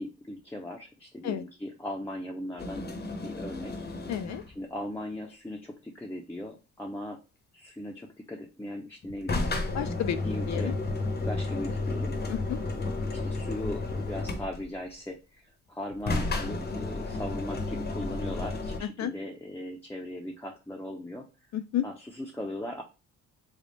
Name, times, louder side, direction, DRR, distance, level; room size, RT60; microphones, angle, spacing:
voice 1, 0.0-2.8 3.2-3.7 4.5-7.2 7.5-9.5 10.2-10.8 11.3-12.2 13.1-21.3 21.8-22.8, left 1 dB, 5° left, 0 dB, 0.7 m, -38 dB
sound 1, 2.6-4.6 9.0-14.8 15.9-18.8, left 2 dB, 35° left, 0.9 m, -32 dB
voice 2, 4.1-4.4 9.7-10.2 10.5-10.7 12.3-12.4 18.8-19.1 21.5-21.9, left 10 dB, 65° left, 10 dB, 0.6 m, -31 dB
3.6 x 2.3 x 4.0 m, 0.30 s
cardioid pair, 90°, 30 cm